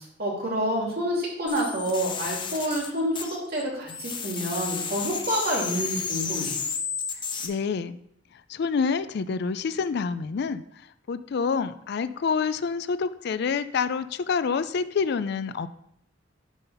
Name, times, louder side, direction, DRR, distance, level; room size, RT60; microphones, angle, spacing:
voice 1, 0.2-6.6, equal, 55° right, -3 dB, 2.6 m, -28 dB
sound 1, 1.5-3.6 3.9-7.5, left 6 dB, 25° left, 0.8 m, -32 dB
voice 2, 7.4-8.0 8.5-10.6 11.1-15.7, left 5 dB, 60° left, 13 dB, 0.4 m, -27 dB
10.5 x 3.9 x 5.6 m, 0.73 s
head